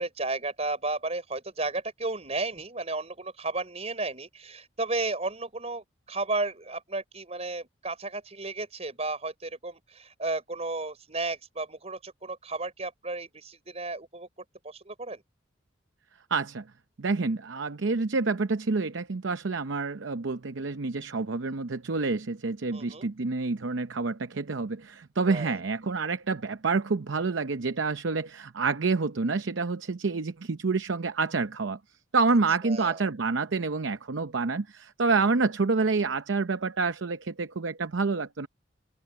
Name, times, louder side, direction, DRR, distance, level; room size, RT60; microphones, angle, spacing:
voice 1, 0.0-14.3 14.6-15.2 22.7-23.1 25.2-25.6 32.6-33.0, right 2 dB, 35° right, 5.0 m, -33 dB
voice 2, 16.3-16.6 17.0-31.8 32.1-38.5, right 4 dB, 75° right, 0.7 m, -28 dB
open air
head